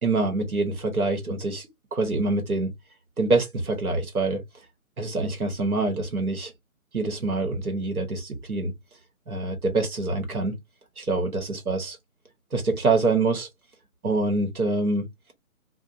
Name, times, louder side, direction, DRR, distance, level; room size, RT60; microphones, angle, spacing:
voice 1, 0.0-2.7 3.2-4.4 5.0-6.5 6.9-8.7 9.3-10.6 11.0-12.0 12.5-13.5 14.0-15.1, right 3 dB, 85° right, 1.1 m, -25 dB
2.7 x 2.2 x 2.4 m
figure-of-eight pair, 145°, 43 cm